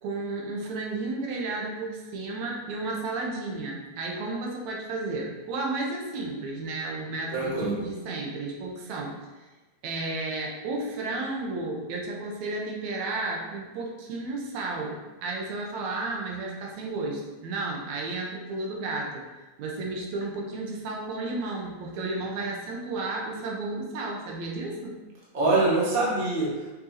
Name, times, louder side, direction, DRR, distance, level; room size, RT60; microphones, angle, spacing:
voice 1, 0.0-9.1 9.8-19.2 19.6-25.0, right 2 dB, 75° right, -1 dB, 2.2 m, -33 dB
voice 2, 7.3-7.8 25.3-26.7, right 2 dB, 30° right, -5 dB, 1.0 m, -24 dB
6.7 x 5.6 x 2.8 m, 1.2 s
omnidirectional pair, 3.3 m